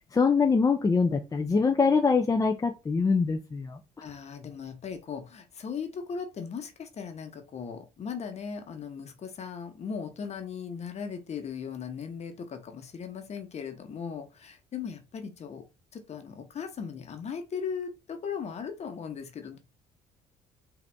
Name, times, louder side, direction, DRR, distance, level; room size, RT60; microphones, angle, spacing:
voice 1, 0.1-3.8, left 4 dB, 25° left, 0.6 m, -24 dB
voice 2, 4.0-15.7 15.9-19.6, left 6 dB, 45° left, 1.2 m, -38 dB
5.0 x 2.8 x 3.5 m
supercardioid pair, 80°, 15 cm